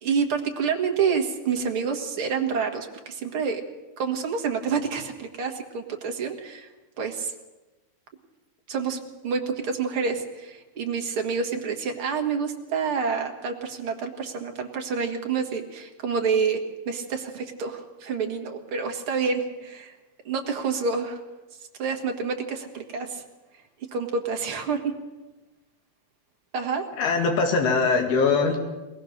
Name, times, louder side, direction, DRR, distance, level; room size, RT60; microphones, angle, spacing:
voice 1, 0.0-3.6 4.0-6.7 7.0-7.3 8.7-16.6 16.9-20.0 20.3-21.2 21.8-23.2 23.9-24.9 26.5-26.9, right 5 dB, 45° right, 3 dB, 1.9 m, -28 dB
voice 2, 27.0-28.6, left 4 dB, 80° left, 3 dB, 4.2 m, -22 dB
21.5 x 19.5 x 6.6 m, 1.1 s
omnidirectional pair, 4.4 m